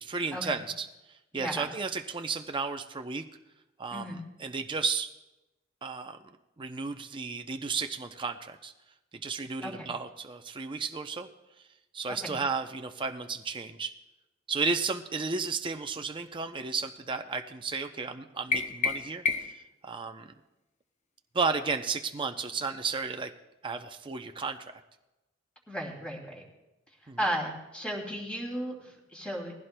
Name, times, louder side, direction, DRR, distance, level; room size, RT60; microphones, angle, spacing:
voice 1, 0.0-3.2 3.8-5.1 5.8-6.2 6.6-8.7 9.1-11.3 11.9-13.9 14.5-20.3 21.3-23.3 23.6-24.8 27.1-27.2, right 4 dB, 25° right, 5 dB, 0.5 m, -33 dB
voice 2, 1.3-1.7 3.9-4.2 9.6-9.9 12.1-12.4 25.7-26.4 27.0-29.5, equal, 5° left, 0 dB, 2.6 m, -35 dB
sound 1, 18.5-19.7, left 4 dB, 35° left, 0.7 m, -30 dB
20.0 x 15.5 x 2.2 m, 0.98 s
head